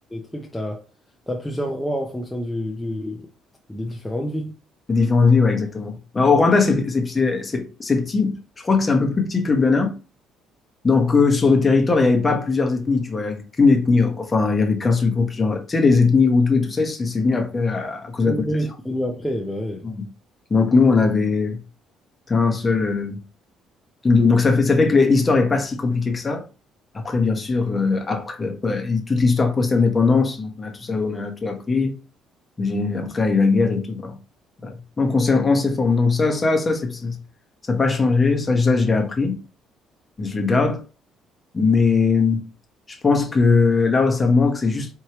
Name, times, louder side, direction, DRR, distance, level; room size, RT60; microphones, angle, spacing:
voice 1, 0.1-0.8 1.3-3.3 3.7-4.5 18.3-19.9, equal, 5° left, 0.6 m, -28 dB
voice 2, 4.9-8.4 8.6-9.9 10.8-18.4 19.8-20.0 20.5-21.6 22.3-23.2 24.0-26.4 27.0-31.9 32.6-34.1 34.6-37.2 37.7-39.4 40.2-40.8 41.5-42.4 42.9-44.9, left 4 dB, 20° left, 0.9 m, -19 dB
4.6 x 3.1 x 2.9 m
cardioid pair, 145°, 0 cm